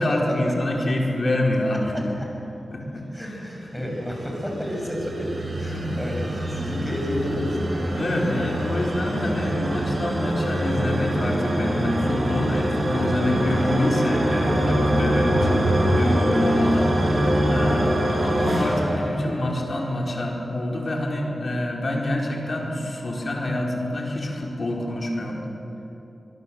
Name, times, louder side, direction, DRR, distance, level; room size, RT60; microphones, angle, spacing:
voice 1, 0.0-1.9 2.7-3.5 3.8-3.9 5.7-6.1 8.0-25.4, left 1 dB, 50° left, -1 dB, 4.5 m, -26 dB
voice 2, 3.1-5.3 5.6-8.5 9.3-9.6 12.9-13.1 14.2-14.5, equal, ahead, 0 dB, 6.1 m, -31 dB
sound 1, 3.8-19.9, right 1 dB, 50° right, 6.1 m, -24 dB
24.5 x 23.0 x 7.8 m, 2.9 s
wide cardioid pair, 105°, 0 cm